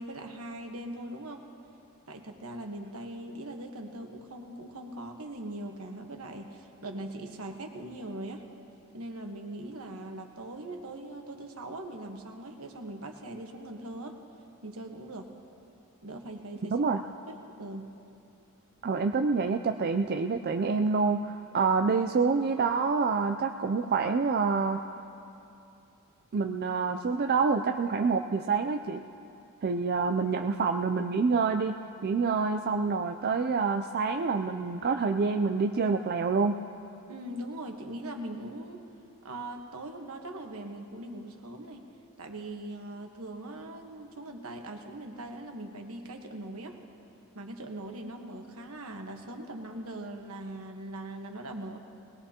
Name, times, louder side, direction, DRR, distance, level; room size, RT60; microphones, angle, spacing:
voice 1, 0.0-1.5 2.1-8.4 8.9-14.2 14.6-15.3 16.0-16.7 17.3-17.9 37.1-38.9 39.2-41.8 42.2-46.8 47.3-51.8, right 1 dB, 70° right, 3 dB, 1.3 m, -41 dB
voice 2, 16.7-17.0 18.8-24.8 26.3-29.0 29.6-31.8 32.0-36.6, right 4 dB, 45° right, 5 dB, 0.4 m, -27 dB
20.0 x 20.0 x 2.9 m, 2.7 s
head